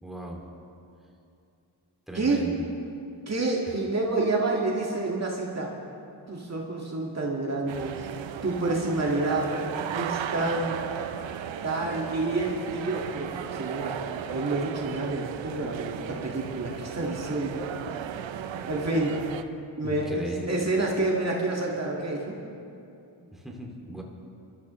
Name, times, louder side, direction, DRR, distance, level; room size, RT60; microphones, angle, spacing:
voice 1, 0.0-0.5 2.1-2.7 3.7-3.8 19.8-20.7 23.2-24.0, right 1 dB, ahead, -1 dB, 2.4 m, -38 dB
voice 2, 2.1-2.5 3.3-5.8 6.3-8.1 8.4-9.6 9.9-10.8 11.6-14.0 14.3-17.6 18.5-19.2 19.8-22.4, right 2 dB, 35° right, -2 dB, 1.9 m, -28 dB
sound 1, 7.7-19.4, right 9 dB, 80° right, 0.8 m, -35 dB
22.5 x 13.0 x 3.1 m, 2.6 s
cardioid pair, 65°, 46 cm